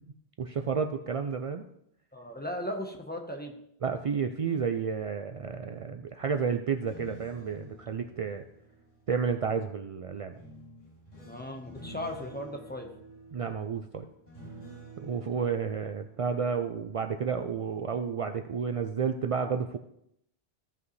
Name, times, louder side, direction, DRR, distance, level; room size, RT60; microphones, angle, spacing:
voice 1, 0.4-1.6 3.8-8.4 9.1-10.3 13.3-14.1 15.0-19.8, right 6 dB, 65° right, 6 dB, 0.3 m, -31 dB
voice 2, 2.1-3.5 11.3-12.9, left 1 dB, 10° left, 1 dB, 1.0 m, -37 dB
sound 1, 6.7-9.6 10.4-17.3 17.7-18.0, right 2 dB, 40° left, 4.6 m, -50 dB
15.0 x 5.4 x 3.2 m, 0.74 s
omnidirectional pair, 1.1 m